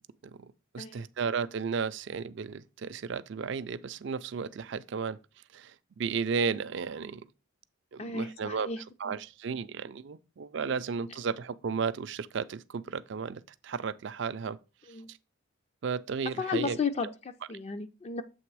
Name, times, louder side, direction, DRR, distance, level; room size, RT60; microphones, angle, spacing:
voice 1, 0.3-5.2 5.5-7.3 7.9-14.6 15.1-15.2 15.8-16.8, right 5 dB, 55° right, 0.4 m, -34 dB
voice 2, 8.0-8.8 9.1-9.2 10.6-10.8 14.9-15.1 16.4-18.2, left 4 dB, 30° left, 0.4 m, -34 dB
7.8 x 3.3 x 4.6 m
head